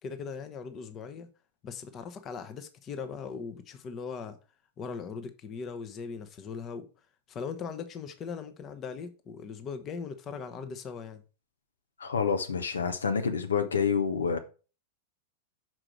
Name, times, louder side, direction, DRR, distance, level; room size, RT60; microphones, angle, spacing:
voice 1, 0.0-1.3 1.6-4.4 4.8-6.9 7.3-11.2, left 5 dB, 30° left, 0.9 m, -39 dB
voice 2, 12.0-14.4, left 6 dB, 70° left, 0.9 m, -28 dB
6.2 x 4.9 x 4.6 m
figure-of-eight pair, 90°, 0 cm